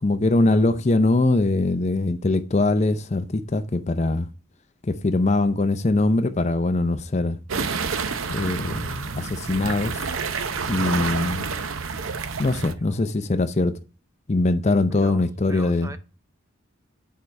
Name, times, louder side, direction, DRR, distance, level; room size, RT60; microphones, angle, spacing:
voice 1, 0.0-4.3 4.8-7.4 8.3-10.0 10.7-11.5 12.4-13.7 14.3-15.9, left 2 dB, 35° left, 0.5 m, -22 dB
sound 1, 7.5-12.7, right 5 dB, 85° right, 0.7 m, -29 dB
voice 2, 15.5-16.0, right 2 dB, 15° right, 0.5 m, -40 dB
9.3 x 4.7 x 4.3 m
head